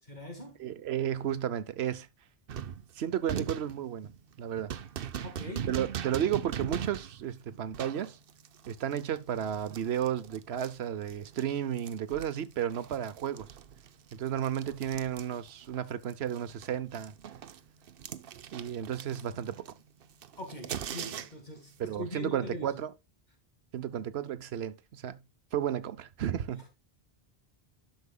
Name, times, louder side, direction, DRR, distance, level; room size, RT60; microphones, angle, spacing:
voice 1, 0.1-0.6 5.2-5.7 20.4-22.8, left 1 dB, 45° left, 2.0 m, -42 dB
voice 2, 0.6-2.1 3.0-4.1 4.4-4.7 5.7-8.2 8.7-13.5 14.1-17.1 18.5-19.6 21.8-22.9 23.7-25.2 25.5-26.7, right 10 dB, 90° right, 1.0 m, -33 dB
sound 1, 2.5-11.5 11.8-15.8 16.0-21.6, right 8 dB, 65° right, 0.8 m, -40 dB
12.0 x 6.3 x 2.3 m
omnidirectional pair, 1.0 m